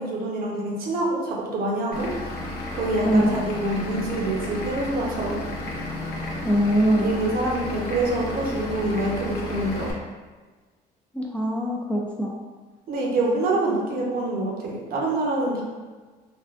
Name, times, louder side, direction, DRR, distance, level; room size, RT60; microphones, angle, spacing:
voice 1, 0.0-2.1 2.7-5.3 6.8-9.9 12.9-15.6, right 2 dB, 60° right, -2 dB, 0.8 m, -26 dB
Vehicle / Engine, 1.9-9.9, left 1 dB, 70° left, 0.7 m, -32 dB
voice 2, 3.1-3.4 6.4-7.2 11.1-12.4, equal, 5° left, -2 dB, 0.3 m, -22 dB
3.5 x 2.2 x 2.4 m, 1.3 s
cardioid pair, 110°, 17 cm